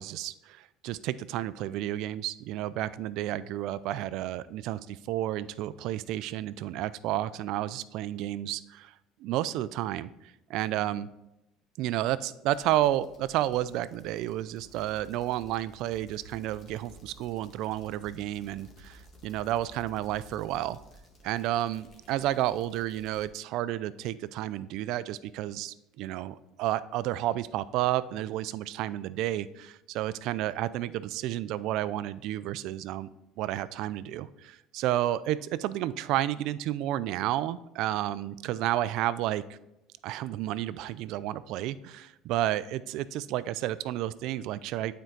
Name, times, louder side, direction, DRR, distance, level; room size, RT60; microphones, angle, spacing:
voice 1, 0.0-8.9 9.2-10.1 10.5-11.1 11.8-20.8 21.2-33.1 33.4-39.4 40.0-44.9, right 13 dB, 70° right, 16 dB, 0.3 m, -31 dB
sound 1, 12.5-23.3, equal, 40° left, 1.4 m, -54 dB
9.0 x 4.5 x 3.8 m, 0.89 s
supercardioid pair, 110°, 0 cm